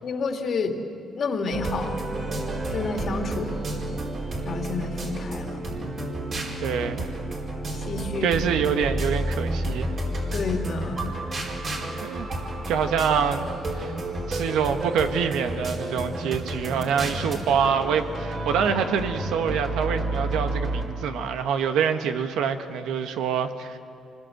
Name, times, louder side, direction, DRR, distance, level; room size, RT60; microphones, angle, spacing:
voice 1, 0.0-0.7 1.2-1.9 2.7-3.6 4.4-5.6 7.7-8.3 10.3-11.1, left 4 dB, 55° left, 4 dB, 2.3 m, -29 dB
sound 1, 1.5-20.8, right 1 dB, 50° right, 4.7 m, -30 dB
voice 2, 6.6-7.1 8.2-9.9 12.0-12.3 12.7-13.5 13.7-13.9 14.3-23.8, right 7 dB, 90° right, 7 dB, 1.3 m, -25 dB
26.5 x 20.0 x 7.9 m, 2.6 s
cardioid pair, 90°, 0 cm